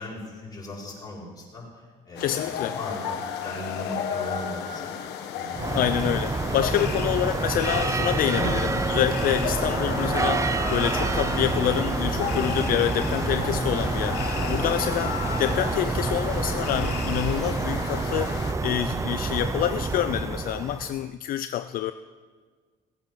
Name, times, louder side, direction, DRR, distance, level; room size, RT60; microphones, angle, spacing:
voice 1, 0.0-4.9 5.3-5.8 6.3-6.9 8.1-8.6 14.4-14.7, left 1 dB, 20° left, -5 dB, 5.0 m, -37 dB
sound 1, 2.2-18.5, left 8 dB, 85° left, 1.4 m, -33 dB
voice 2, 2.2-2.8 5.7-21.9, left 11 dB, 60° left, 11 dB, 0.4 m, -27 dB
sound 2, 5.5-21.0, right 3 dB, 20° right, 0.5 m, -28 dB
17.5 x 8.8 x 6.0 m, 1.5 s
cardioid pair, 110°, 17 cm